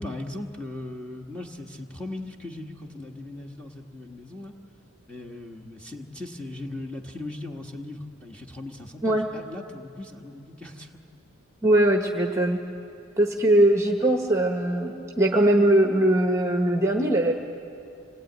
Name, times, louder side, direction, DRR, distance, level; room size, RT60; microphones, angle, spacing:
voice 1, 0.0-4.5 5.1-11.0, left 2 dB, 5° left, 2 dB, 1.4 m, -38 dB
voice 2, 11.6-12.6 13.2-17.4, right 1 dB, 15° right, 3 dB, 1.1 m, -21 dB
26.5 x 19.5 x 9.4 m, 2.6 s
head